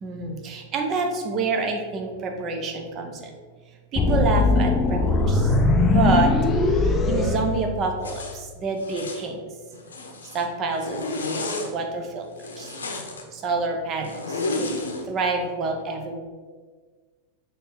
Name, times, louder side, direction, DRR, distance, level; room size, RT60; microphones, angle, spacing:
voice 1, 0.0-3.3 3.9-5.6 5.9-6.3 6.8-9.4 10.3-11.2 11.7-12.3 12.6-12.7 13.3-16.2, right 3 dB, 30° right, 3 dB, 0.9 m, -27 dB
sound 1, 4.0-8.2, left 2 dB, 25° left, 0.5 m, -20 dB
Zipper (clothing), 8.0-8.4 8.8-9.3 9.7-10.4 10.8-11.7 12.4-13.2 14.0-15.0, left 2 dB, 70° left, 0.8 m, -31 dB
6.2 x 3.2 x 4.8 m, 1.5 s
figure-of-eight pair, 90°, 0 cm